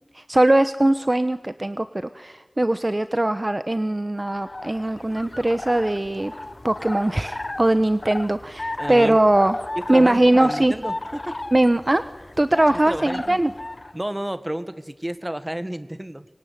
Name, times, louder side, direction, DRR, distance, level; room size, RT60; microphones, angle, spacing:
voice 1, 0.1-6.3 6.6-9.6 9.9-10.7 11.5-12.0 12.4-13.5, right 1 dB, 40° right, 11 dB, 1.0 m, -20 dB
sound 1, 4.2-14.0, left 2 dB, 55° left, 1.0 m, -35 dB
voice 2, 8.8-9.2 9.7-11.4 12.9-13.4 13.9-16.2, right 1 dB, 25° right, 12 dB, 1.6 m, -31 dB
25.5 x 24.0 x 9.5 m, 1.2 s
wide cardioid pair, 45°, 0 cm